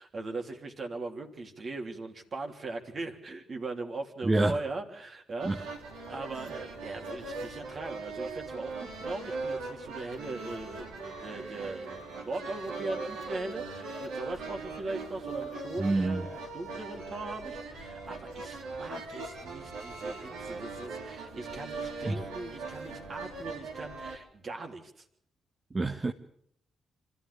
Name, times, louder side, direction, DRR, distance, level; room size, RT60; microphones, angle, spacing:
voice 1, 0.0-5.7 6.1-25.0, right 3 dB, 50° right, 3.3 m, -39 dB
voice 2, 4.2-4.6 5.4-5.6 15.8-16.2 22.1-22.2 25.7-26.1, right 2 dB, 35° right, 1.3 m, -26 dB
sound 1, 5.4-24.2, right 3 dB, 90° right, 3.6 m, -40 dB
25.5 x 13.5 x 8.4 m
supercardioid pair, 50°, 0 cm